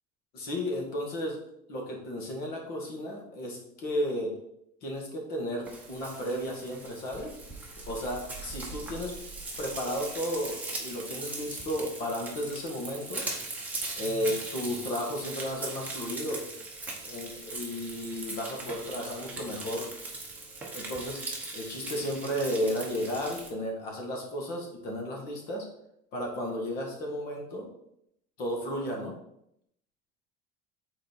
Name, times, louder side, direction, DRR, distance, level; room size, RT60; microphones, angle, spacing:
voice 1, 0.3-1.4 1.7-4.3 4.8-7.4 7.9-9.1 9.6-13.2 14.0-16.4 17.0-19.9 20.7-21.2 21.5-25.6 26.1-27.7 28.4-29.1, equal, 50° left, 0 dB, 1.8 m, -33 dB
Frying (food), 5.6-23.5, right 2 dB, 5° right, 1.0 m, -40 dB
6.2 x 4.2 x 4.5 m, 0.78 s
cardioid pair, 175°, 21 cm